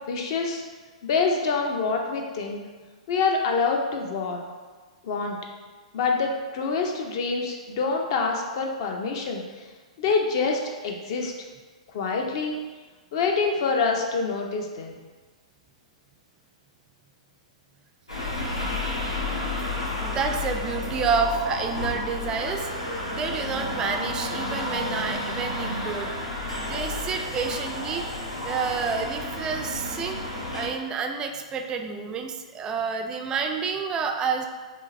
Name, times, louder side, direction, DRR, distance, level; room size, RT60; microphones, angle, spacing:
voice 1, 0.1-0.6 1.0-2.6 3.1-4.4 5.0-5.4 5.9-9.7 10.0-11.3 11.9-12.6 13.1-15.0, left 4 dB, 45° left, 2 dB, 0.6 m, -26 dB
sound 1, 18.1-30.7, left 2 dB, 75° left, 1.4 m, -31 dB
voice 2, 19.9-26.1 26.6-28.1 28.4-34.5, right 5 dB, 20° right, 5 dB, 0.3 m, -29 dB
5.4 x 2.0 x 3.1 m, 1.3 s
figure-of-eight pair, 105°, 3 cm